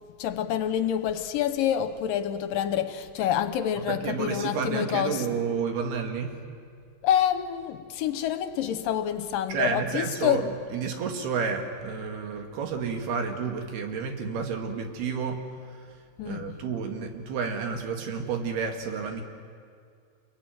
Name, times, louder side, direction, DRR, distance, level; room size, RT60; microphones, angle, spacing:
voice 1, 0.2-5.3 7.0-10.5 16.2-16.6, left 10 dB, 75° left, 2.3 m, -27 dB
voice 2, 3.9-6.3 9.5-15.4 16.2-19.2, right 5 dB, 85° right, 4.1 m, -30 dB
27.5 x 22.0 x 9.4 m
omnidirectional pair, 4.5 m